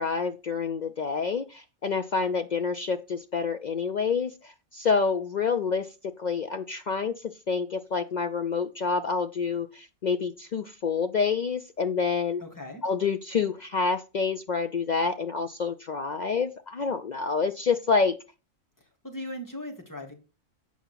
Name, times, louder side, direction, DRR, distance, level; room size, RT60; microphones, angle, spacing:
voice 1, 0.0-5.9 6.2-12.4 12.8-18.2, left 5 dB, 70° left, 0.4 m, -28 dB
voice 2, 12.4-12.8 19.0-20.1, left 1 dB, 15° left, 2.0 m, -38 dB
8.5 x 5.6 x 5.6 m
omnidirectional pair, 1.4 m